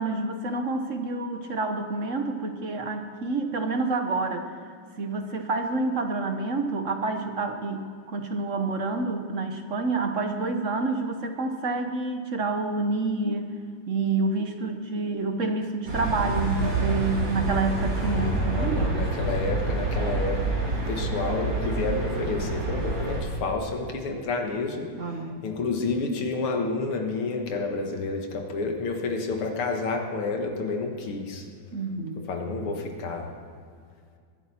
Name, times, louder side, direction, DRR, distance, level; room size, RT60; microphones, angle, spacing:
voice 1, 0.0-4.5 5.0-13.5 13.9-19.0 24.9-25.4 31.7-32.2, right 3 dB, 50° right, 6 dB, 1.0 m, -28 dB
sound 1, 15.9-23.2, right 2 dB, 75° right, 4.4 m, -27 dB
voice 2, 18.0-20.5 20.9-31.4 32.3-33.4, left 3 dB, 85° left, 3 dB, 2.4 m, -30 dB
24.0 x 11.0 x 4.3 m, 2.1 s
omnidirectional pair, 2.3 m